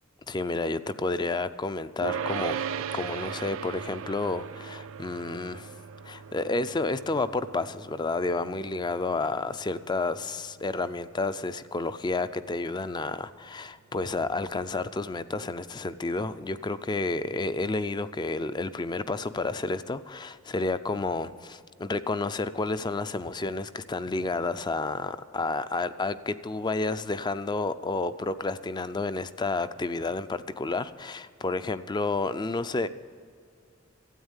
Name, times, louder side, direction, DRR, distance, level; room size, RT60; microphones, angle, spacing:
voice 1, 0.3-5.7 6.0-32.9, left 3 dB, 20° left, 0.4 m, -30 dB
sound 1, 2.0-13.3, right 7 dB, 90° right, 0.5 m, -39 dB
13.0 x 8.8 x 8.2 m
head